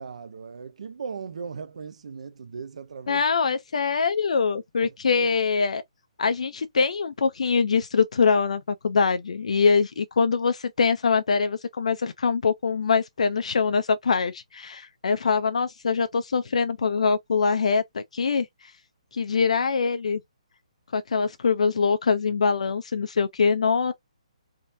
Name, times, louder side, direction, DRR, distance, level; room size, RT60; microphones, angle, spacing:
voice 1, 0.0-3.2 4.8-5.3, right 5 dB, 65° right, 0.5 m, -38 dB
voice 2, 3.1-5.8 6.2-18.7 19.1-20.2 20.9-23.9, left 5 dB, 65° left, 0.5 m, -23 dB
3.6 x 2.7 x 2.5 m
hypercardioid pair, 170°, 4 cm